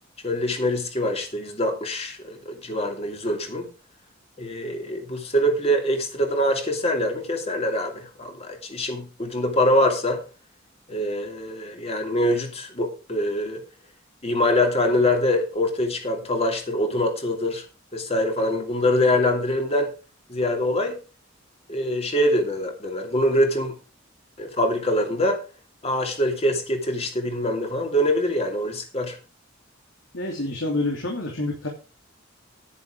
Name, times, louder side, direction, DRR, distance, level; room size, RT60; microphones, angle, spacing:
voice 1, 0.2-3.7 4.4-10.2 10.9-13.6 14.2-17.6 17.9-19.9 20.3-21.0 21.7-23.8 24.4-25.4 25.8-29.2, left 1 dB, 30° left, 2.8 m, -24 dB
voice 2, 30.1-31.7, left 2 dB, 80° left, 2.9 m, -27 dB
10.5 x 10.0 x 4.9 m
head